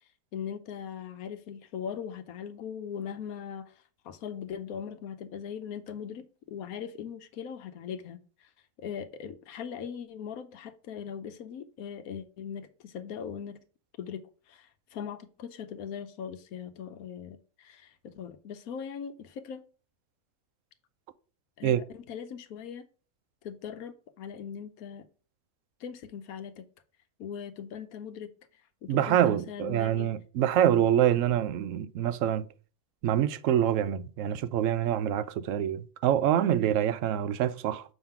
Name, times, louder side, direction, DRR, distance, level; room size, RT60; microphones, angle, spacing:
voice 1, 0.3-3.7 4.0-8.5 8.8-13.6 14.0-19.6 21.6-22.8 23.4-25.0 25.8-26.6 27.2-28.3 28.8-30.1, left 7 dB, 75° left, 1.2 m, -40 dB
voice 2, 28.9-32.4 33.0-37.8, right 11 dB, 70° right, 0.9 m, -26 dB
6.4 x 3.7 x 5.7 m
omnidirectional pair, 1.5 m